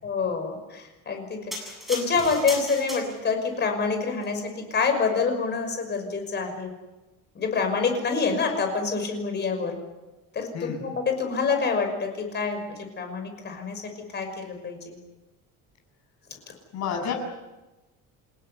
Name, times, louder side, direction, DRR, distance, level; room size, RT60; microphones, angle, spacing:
voice 1, 0.0-6.7 7.3-9.8 10.3-15.0, left 5 dB, 35° left, 5 dB, 5.9 m, -27 dB
sound 1, 1.5-3.5 4.1-4.3, left 1 dB, ahead, 7.5 m, -36 dB
voice 2, 16.7-17.2, left 7 dB, 55° left, 4 dB, 7.1 m, -29 dB
29.5 x 16.5 x 9.6 m, 1.1 s
cardioid pair, 170°, 32 cm